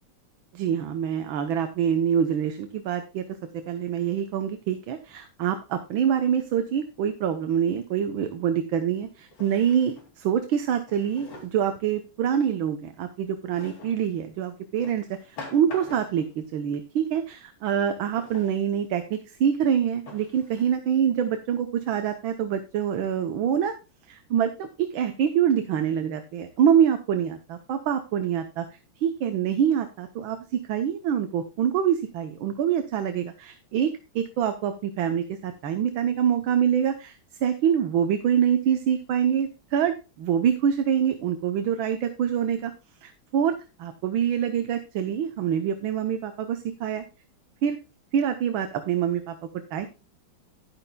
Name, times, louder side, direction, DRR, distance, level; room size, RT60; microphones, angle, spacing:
voice 1, 0.5-3.2 3.7-23.7 24.1-28.7 29.0-42.7 43.0-43.5 43.8-47.0 47.6-47.8 48.1-49.4 49.7-49.9, right 8 dB, 70° right, 7 dB, 1.7 m, -25 dB
Drawer open or close, 8.0-8.1 9.3-10.2 10.9-11.7 13.5-14.0 14.8-16.3 18.1-18.6 19.3-19.4 20.1-20.6, left 3 dB, 70° left, 3.5 m, -44 dB
11.0 x 11.0 x 2.2 m, 0.29 s
omnidirectional pair, 2.3 m